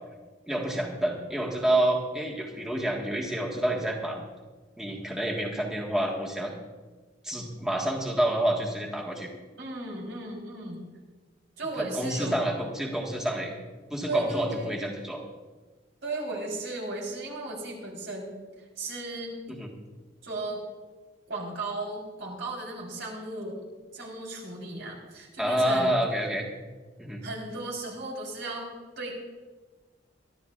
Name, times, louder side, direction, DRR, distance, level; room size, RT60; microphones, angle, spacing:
voice 1, 0.5-4.2 4.8-6.5 7.2-9.3 11.8-13.5 13.9-15.2 19.5-19.7 25.4-26.5 27.0-27.2, right 1 dB, 5° right, -3 dB, 1.5 m, -28 dB
voice 2, 9.6-10.8 11.6-12.4 14.0-14.8 16.0-18.3 18.8-19.3 20.2-20.6 21.3-23.6 23.9-25.9 27.2-28.7 29.0-29.1, right 2 dB, 70° right, -1 dB, 3.9 m, -35 dB
24.0 x 12.5 x 2.4 m, 1.3 s
head